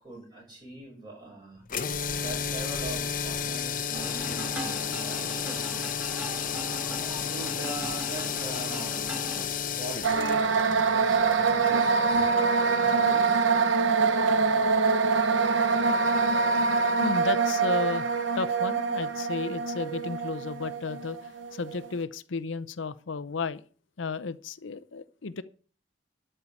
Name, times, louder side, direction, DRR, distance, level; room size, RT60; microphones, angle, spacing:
voice 1, 0.0-1.6 2.2-5.9 7.2-9.1 9.8-13.5, right 2 dB, 25° right, 7.3 m, -42 dB
sound 1, 1.7-11.8, left 7 dB, 45° left, 0.9 m, -32 dB
sound 2, 3.9-9.4, equal, 5° right, 2.3 m, -40 dB
sound 3, 10.0-21.9, right 4 dB, 85° right, 1.1 m, -25 dB
voice 2, 17.0-18.1 18.3-23.6 24.0-25.4, left 4 dB, 85° left, 0.7 m, -33 dB
12.0 x 5.6 x 8.6 m
head